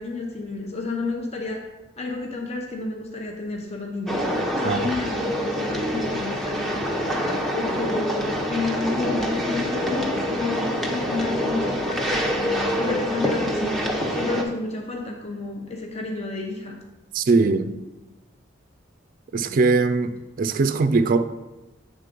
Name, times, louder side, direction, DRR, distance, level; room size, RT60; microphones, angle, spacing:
voice 1, 0.0-1.6 2.0-4.2 4.6-6.7 7.5-16.8, left 3 dB, 35° left, 1 dB, 0.9 m, -30 dB
sound 1, 4.1-14.4, equal, ahead, 0.8 m, -26 dB
voice 2, 17.1-17.8 19.3-21.2, right 3 dB, 45° right, 10 dB, 0.4 m, -21 dB
8.2 x 3.7 x 5.2 m, 1.1 s
head